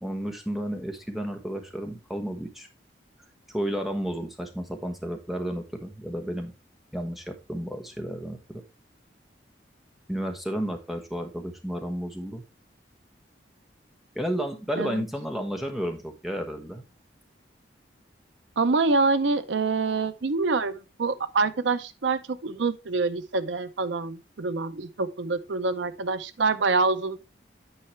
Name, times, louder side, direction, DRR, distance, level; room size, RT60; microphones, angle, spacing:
voice 1, 0.0-2.7 3.5-6.5 6.9-8.6 10.1-12.4 14.1-16.8, equal, ahead, 1.1 m, -32 dB
voice 2, 18.6-27.2, right 3 dB, 85° right, 0.6 m, -26 dB
9.0 x 5.6 x 3.2 m
head